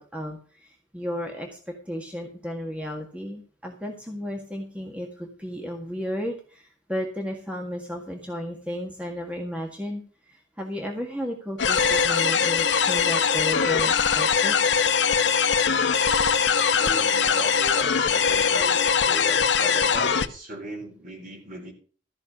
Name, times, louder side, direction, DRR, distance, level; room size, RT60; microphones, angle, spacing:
voice 1, 0.0-10.0 10.3-14.6, equal, 5° right, 1 dB, 1.7 m, -33 dB
sound 1, 11.6-20.3, left 6 dB, 70° left, 0.9 m, -21 dB
voice 2, 16.8-21.7, equal, 45° right, 3 dB, 3.8 m, -37 dB
14.0 x 6.0 x 7.2 m, 0.40 s
head